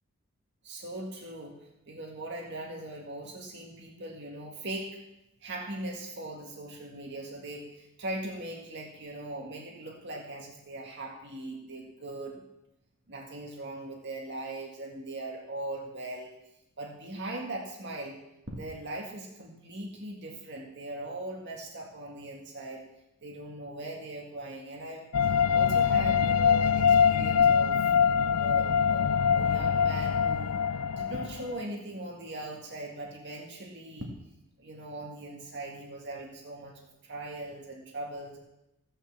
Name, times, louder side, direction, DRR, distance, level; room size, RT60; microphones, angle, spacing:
voice 1, 0.6-1.6 1.9-5.0 5.4-12.4 13.1-16.3 16.8-18.2 18.5-22.8 23.2-25.0 25.5-27.8 28.4-30.6 31.0-34.1 34.6-36.7 37.0-38.4, right 1 dB, 50° right, 0 dB, 1.9 m, -40 dB
sound 1, 25.1-31.6, left 7 dB, 90° left, 0.4 m, -24 dB
15.5 x 5.7 x 7.3 m, 0.89 s
head